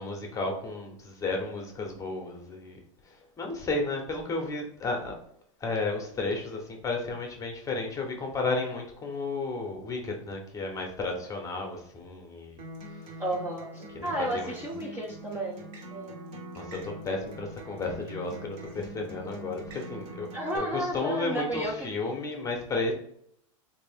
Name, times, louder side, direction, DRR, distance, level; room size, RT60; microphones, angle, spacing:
voice 1, 0.0-2.8 3.4-5.1 5.6-12.6 13.9-14.5 16.6-20.3 20.5-22.9, left 3 dB, 20° left, 2 dB, 0.8 m, -33 dB
Acoustic guitar, 12.6-20.6, right 1 dB, 50° right, 1.1 m, -43 dB
voice 2, 13.2-16.2 20.3-21.9, right 1 dB, 10° right, -3 dB, 0.6 m, -33 dB
3.2 x 2.7 x 3.5 m, 0.69 s
hypercardioid pair, 125°, 17 cm